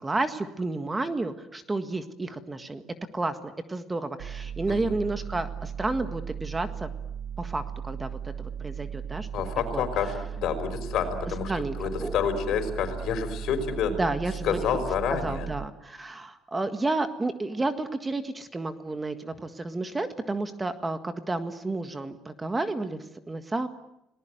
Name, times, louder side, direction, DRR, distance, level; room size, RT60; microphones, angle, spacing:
voice 1, 0.0-2.8 3.1-6.9 7.4-9.3 9.7-9.8 11.5-12.2 13.9-14.6 15.2-23.7, right 2 dB, 15° right, 9 dB, 1.7 m, -31 dB
sound 1, 4.2-15.7, right 8 dB, 85° right, 1.5 m, -37 dB
voice 2, 9.3-11.5 11.8-13.9 14.4-15.5, left 7 dB, 65° left, 8 dB, 5.4 m, -28 dB
30.0 x 19.0 x 9.2 m, 0.85 s
cardioid pair, 125°, 0 cm